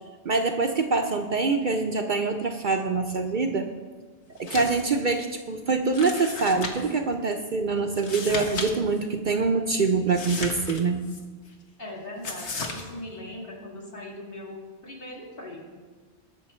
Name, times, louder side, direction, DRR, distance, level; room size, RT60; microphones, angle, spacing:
voice 1, 0.2-3.7 4.4-11.0, right 4 dB, 50° right, 4 dB, 0.8 m, -25 dB
sound 1, 4.4-4.8 5.2-5.3 5.9-7.0 7.9-8.7 9.0-9.1 10.1-11.2 12.2-12.8, left 3 dB, 85° left, 1.5 m, -34 dB
voice 2, 11.8-15.8, left 1 dB, 55° left, -4 dB, 2.8 m, -40 dB
18.0 x 6.7 x 4.4 m, 1.4 s
omnidirectional pair, 1.1 m